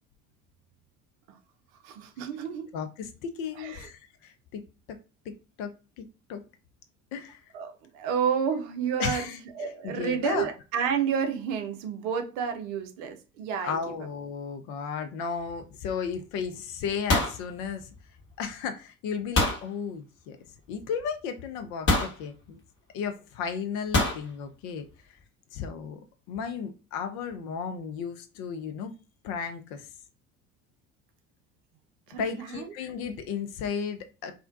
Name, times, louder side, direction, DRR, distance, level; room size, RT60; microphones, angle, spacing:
voice 1, 1.8-2.7 3.6-3.9 7.5-13.8 32.1-32.7, right 7 dB, 60° right, 0.6 m, -30 dB
voice 2, 2.7-4.6 4.9-5.0 5.6-5.7 6.0-6.4 7.1-7.4 9.0-9.4 9.8-10.5 13.6-17.9 18.4-20.4 20.7-22.6 22.9-24.9 25.5-26.0 26.3-28.9 29.2-29.9 32.2-34.3, left 6 dB, 50° left, 0.5 m, -34 dB
sound 1, 15.4-15.8 16.1-16.5 16.7-18.3 19.4-19.7 20.8-20.9 21.9-22.2 23.9-24.2, left 2 dB, 30° left, 0.9 m, -25 dB
2.4 x 2.1 x 2.4 m
figure-of-eight pair, 60°, 42 cm